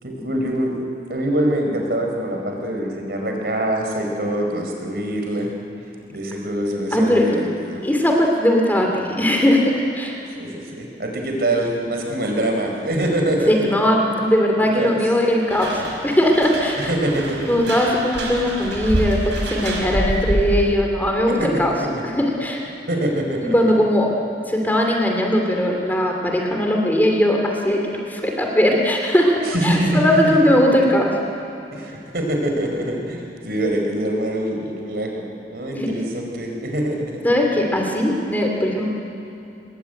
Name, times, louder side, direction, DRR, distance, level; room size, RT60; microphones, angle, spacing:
voice 1, 0.0-0.8 1.1-5.5 6.1-7.8 10.3-14.1 14.6-15.0 15.7-15.8 16.9-17.7 21.3-21.5 22.9-23.5 29.5-30.7 31.7-37.2, right 1 dB, 60° right, 2 dB, 4.6 m, -24 dB
voice 2, 6.9-7.3 7.8-10.1 13.5-16.8 17.5-21.7 22.0-22.6 23.4-24.1 24.5-27.8 28.1-29.3 29.6-31.1 35.7-35.9 37.2-38.9, equal, 10° left, 1 dB, 2.8 m, -19 dB
sound 1, 15.5-20.7, right 1 dB, 85° right, 5.2 m, -26 dB
24.0 x 21.0 x 9.2 m, 2.8 s
head